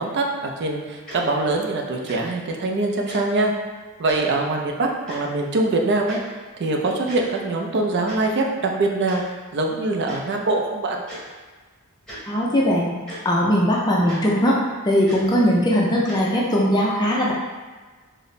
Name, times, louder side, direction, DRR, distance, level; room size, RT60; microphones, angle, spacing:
voice 1, 0.0-3.5 4.0-6.2 6.6-9.2 9.5-11.0, right 2 dB, 50° right, 1 dB, 0.4 m, -23 dB
Tick-tock, 1.1-1.2 2.0-2.2 3.1-3.2 4.0-4.2 5.1-5.2 6.1-6.2 7.0-7.2 8.1-8.2 9.1-9.2 10.0-10.2 11.1-11.2 12.0-12.2 13.1-13.2 14.1-14.2 15.0-15.2 16.1-16.2, equal, 5° left, 1.2 m, -37 dB
voice 2, 12.3-13.0 13.2-14.6 14.8-17.3, equal, 20° left, -4 dB, 0.4 m, -19 dB
4.0 x 2.0 x 3.1 m, 1.4 s
head